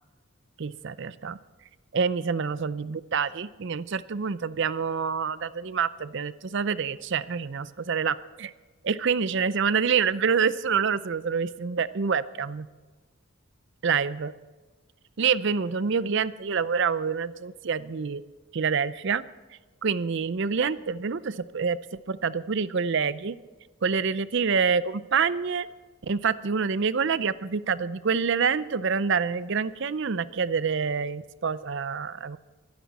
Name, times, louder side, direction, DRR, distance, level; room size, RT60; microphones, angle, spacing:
voice 1, 0.6-1.4 1.9-8.5 8.8-12.7 13.8-14.3 15.2-18.2 18.5-19.2 19.8-23.4 23.8-25.7 26.0-32.4, right 6 dB, 55° right, 16 dB, 0.5 m, -27 dB
23.5 x 10.5 x 4.2 m, 1.3 s
head